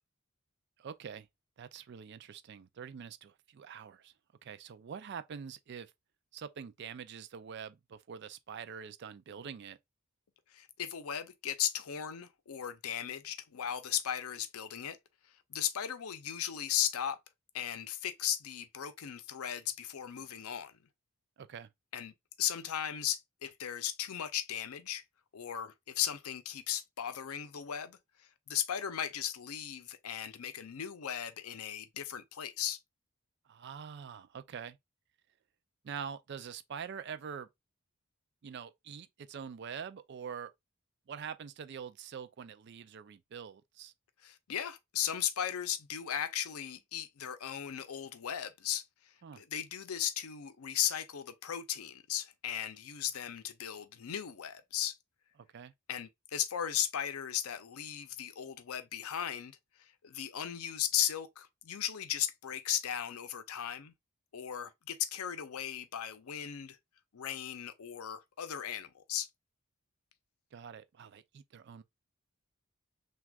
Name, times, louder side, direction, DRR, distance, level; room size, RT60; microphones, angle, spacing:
voice 1, 0.8-1.3 1.6-4.1 4.4-5.9 6.3-9.8 21.4-21.7 33.5-34.8 35.8-37.5 38.4-40.5 41.1-43.9 49.2-49.4 55.5-55.7 70.5-71.8, right 7 dB, 50° right, 0.3 m, -45 dB
voice 2, 10.5-15.0 15.5-17.2 17.5-20.7 21.9-25.0 25.3-32.8 44.2-55.0 55.9-63.9 64.3-66.8 67.1-69.3, left 10 dB, 80° left, 0.5 m, -36 dB
6.0 x 2.3 x 2.3 m
head